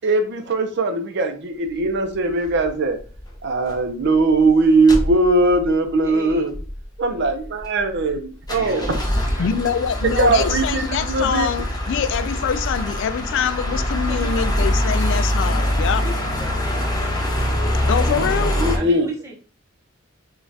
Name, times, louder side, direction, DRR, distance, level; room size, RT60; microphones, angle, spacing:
voice 1, 0.0-3.0 3.4-6.6 7.0-9.0 10.0-11.5 18.6-19.1, right 2 dB, 55° right, 0.6 m, -20 dB
sound 1, 2.4-2.7 3.1-3.3 3.6-3.7 4.0-4.5 4.9-5.6 6.0-6.1 6.3-6.8 7.2-8.1 8.4-18.8, left 1 dB, 20° left, 0.7 m, -23 dB
voice 2, 6.0-6.4 8.5-9.5 14.1-14.5 16.0-16.9 18.7-19.3, right 1 dB, 15° right, 1.0 m, -36 dB
voice 3, 9.4-16.1 17.7-18.6, left 7 dB, 60° left, 0.3 m, -24 dB
5.0 x 2.4 x 2.7 m
head